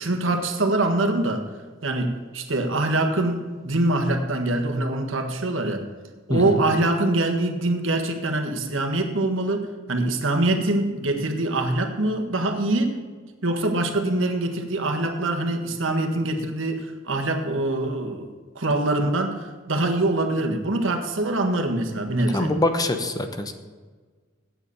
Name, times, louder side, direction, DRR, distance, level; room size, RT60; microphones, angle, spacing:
voice 1, 0.0-1.4 1.8-5.8 6.3-13.0 13.4-22.5, right 2 dB, 90° right, 5 dB, 1.6 m, -24 dB
voice 2, 6.3-6.6 22.3-23.5, left 1 dB, 20° left, 8 dB, 0.9 m, -24 dB
8.8 x 7.7 x 8.3 m, 1.4 s
head